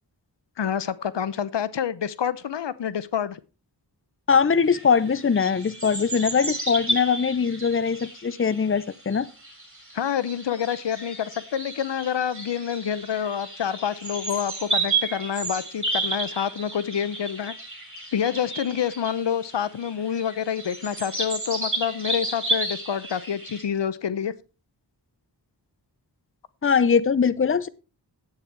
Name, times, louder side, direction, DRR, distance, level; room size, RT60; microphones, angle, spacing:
voice 1, 0.6-3.4 9.9-17.5 18.1-24.3, left 8 dB, 80° left, 17 dB, 0.7 m, -27 dB
voice 2, 4.3-9.3 26.6-27.7, left 6 dB, 30° left, 17 dB, 0.7 m, -21 dB
sound 1, 4.6-23.6, right 2 dB, 30° right, 6.1 m, -32 dB
9.7 x 8.9 x 4.6 m, 0.32 s
wide cardioid pair, 55°, 42 cm